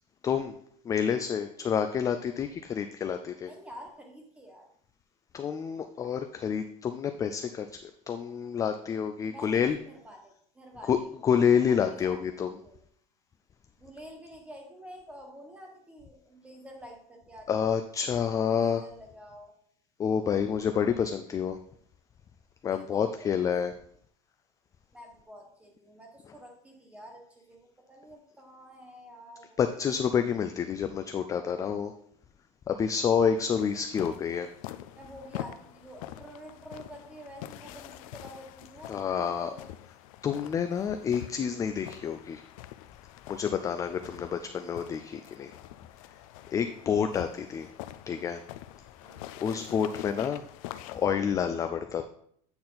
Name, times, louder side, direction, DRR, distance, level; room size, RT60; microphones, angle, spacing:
voice 1, 0.2-0.5 0.9-3.5 5.3-9.8 10.9-11.0 11.2-12.5 17.5-18.8 20.0-21.6 22.6-23.7 29.6-31.9 32.7-34.5 38.9-39.5 40.2-42.4 43.3-45.5 46.5-47.7 48.1-48.4 49.4-50.4 50.9-52.0, left 7 dB, 20° left, 8 dB, 0.3 m, -28 dB
voice 2, 3.4-4.7 9.2-11.4 11.7-12.2 12.5-12.8 13.8-17.5 18.5-19.5 20.2-20.4 22.7-23.4 23.7-23.8 24.9-29.7 32.7-32.8 33.9-34.1 35.0-39.7 46.7-46.9 49.0-49.3, equal, 5° right, 2 dB, 1.4 m, -49 dB
sound 1, 33.4-51.1, left 14 dB, 80° left, 0.5 m, -45 dB
8.6 x 4.2 x 4.0 m, 0.67 s
supercardioid pair, 140°, 17 cm